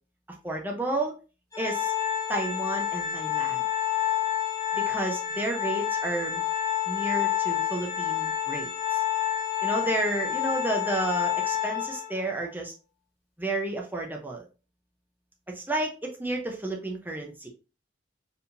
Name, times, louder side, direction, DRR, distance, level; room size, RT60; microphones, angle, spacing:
voice 1, 0.4-1.1 1.6-1.9 2.3-3.6 4.7-6.4 6.9-9.0 9.6-12.7 13.4-14.4 15.5-17.5, right 1 dB, 10° right, 0 dB, 0.8 m, -31 dB
Organ, 1.5-12.2, left 10 dB, 15° left, 1.7 m, -29 dB
4.6 x 3.6 x 2.7 m, 0.34 s
head